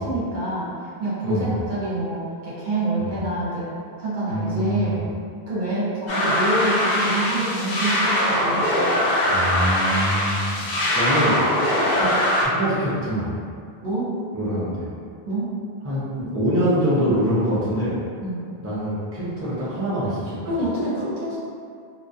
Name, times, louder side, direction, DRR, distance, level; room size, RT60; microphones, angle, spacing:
voice 1, 0.0-3.7 4.0-5.0 5.5-8.8 10.6-10.8 13.8-14.1 15.3-15.6 18.2-18.5 20.5-21.4, right 1 dB, 55° right, -8 dB, 0.7 m, -27 dB
voice 2, 4.3-5.0 9.3-10.5 10.9-11.4 12.0-12.1 12.4-13.3 14.3-14.9 15.8-18.0 18.6-20.5, equal, 20° right, -9 dB, 0.4 m, -24 dB
sound 1, 6.1-12.5, left 1 dB, 55° left, 0.5 m, -22 dB
2.3 x 2.1 x 2.6 m, 2.2 s
omnidirectional pair, 1.1 m